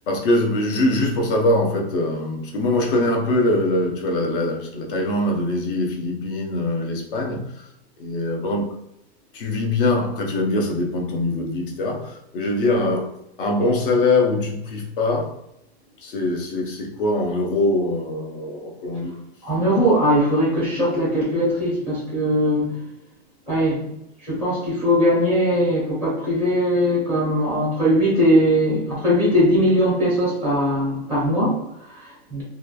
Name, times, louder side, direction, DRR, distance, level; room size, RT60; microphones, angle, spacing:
voice 1, 0.1-7.5 8.0-8.7 9.3-13.1 13.4-15.3 16.0-19.1, left 2 dB, 55° left, 0.7 m, -22 dB
voice 2, 19.4-22.8 23.5-23.8 24.2-32.4, equal, 5° left, 0.5 m, -20 dB
3.0 x 2.3 x 2.3 m
hypercardioid pair, 160°, 32 cm